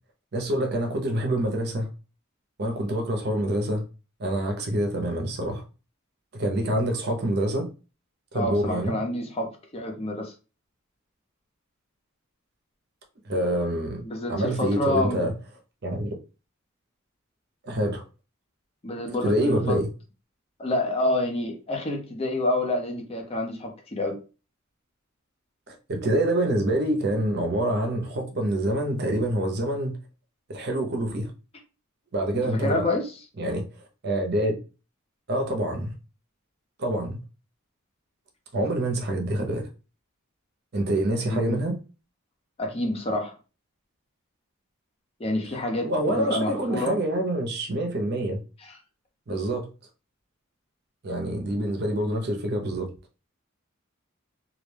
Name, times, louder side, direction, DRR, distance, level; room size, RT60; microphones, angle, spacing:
voice 1, 0.3-1.9 2.6-3.8 4.2-5.6 6.3-7.7 8.3-9.0 13.2-14.0 14.3-15.3 15.8-16.1 17.6-18.0 19.1-19.9 25.7-30.0 30.5-31.3 32.1-32.9 33.4-33.6 34.0-34.6 35.3-35.9 36.8-37.2 38.5-39.7 40.7-41.8 45.8-48.4 49.3-49.7 51.0-52.9, right 1 dB, 50° right, 0.6 m, -26 dB
voice 2, 8.3-10.3 14.0-15.2 18.8-19.8 20.6-24.2 32.4-33.1 41.3-41.6 42.6-43.3 45.2-47.0 48.6-48.8, left 1 dB, 30° left, 0.5 m, -28 dB
2.3 x 2.1 x 3.2 m
head